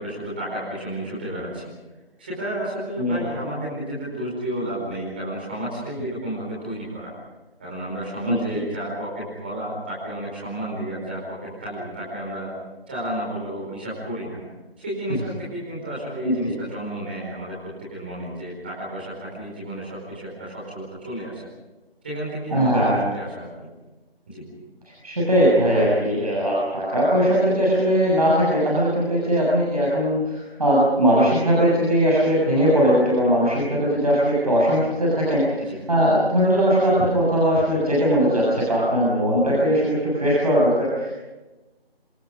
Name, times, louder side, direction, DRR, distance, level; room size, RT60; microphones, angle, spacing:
voice 1, 0.0-1.7 2.2-7.1 7.6-12.5 12.9-14.4 14.8-21.4 22.0-23.7 24.3-24.4 35.6-35.8, right 1 dB, 10° right, -6 dB, 4.8 m, -32 dB
voice 2, 8.2-8.6 15.1-15.2 16.2-16.6 22.5-23.0 25.0-41.1, equal, 40° right, -6 dB, 7.0 m, -20 dB
27.5 x 26.5 x 5.4 m, 1.1 s
figure-of-eight pair, 175°, 31 cm